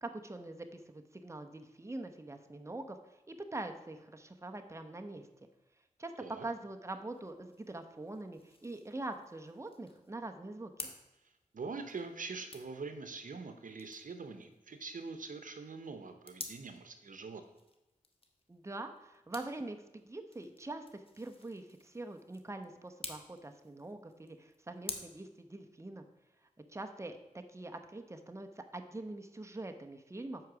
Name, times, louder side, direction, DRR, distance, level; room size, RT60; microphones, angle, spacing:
voice 1, 0.0-3.0 3.3-5.3 6.0-6.1 6.4-10.9 18.5-26.0 26.7-30.4, right 2 dB, 20° right, 6 dB, 0.8 m, -44 dB
sound 1, 6.9-24.9, left 2 dB, 40° left, 1.2 m, -52 dB
voice 2, 11.5-17.4, right 4 dB, 75° right, 7 dB, 0.8 m, -44 dB
7.8 x 4.7 x 6.1 m, 0.97 s
cardioid pair, 55°, 14 cm